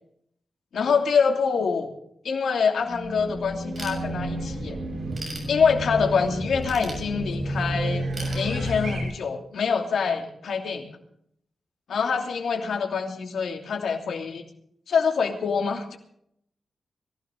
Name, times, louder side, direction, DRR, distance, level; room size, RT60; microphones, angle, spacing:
voice 1, 0.7-1.9 2.2-4.8 5.5-8.1 8.3-10.9 11.9-14.4 14.9-16.0, left 5 dB, 90° left, 3 dB, 2.8 m, -25 dB
Race car auto racing / Alarm, 2.8-9.0, equal, 70° right, 5.5 m, -31 dB
Ratchet pawl / Tools, 3.8-4.5 4.9-6.1 6.6-7.6 8.1-9.1, right 2 dB, 35° right, 6.6 m, -40 dB
23.0 x 16.0 x 3.9 m, 0.71 s
wide cardioid pair, 130°, 0 cm